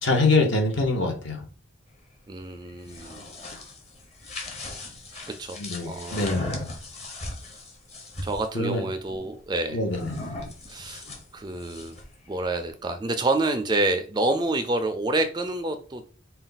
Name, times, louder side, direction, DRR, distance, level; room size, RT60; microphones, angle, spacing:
voice 1, 0.0-1.5 5.5-6.6 8.5-8.8 9.7-10.0, left 3 dB, 60° left, 1.1 m, -24 dB
voice 2, 2.3-3.2 5.3-5.6 5.9-6.3 8.2-9.8 10.7-11.0 11.3-11.9 12.3-16.1, right 2 dB, 20° right, 0.3 m, -28 dB
sound 1, 2.7-8.5 9.9-12.1, left 2 dB, 30° left, 0.9 m, -37 dB
4.1 x 2.3 x 3.9 m
head